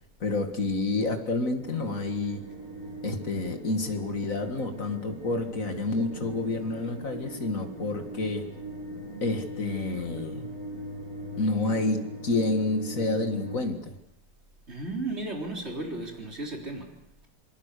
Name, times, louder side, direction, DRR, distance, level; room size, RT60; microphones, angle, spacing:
voice 1, 0.2-2.4 3.0-8.4 9.2-10.5 11.4-14.0, left 2 dB, 35° left, 1.4 m, -29 dB
sound 1, 1.6-13.6, right 1 dB, 50° right, 8.3 m, -40 dB
voice 2, 14.7-17.3, right 2 dB, 20° right, 3.6 m, -35 dB
27.5 x 20.5 x 6.7 m
omnidirectional pair, 4.0 m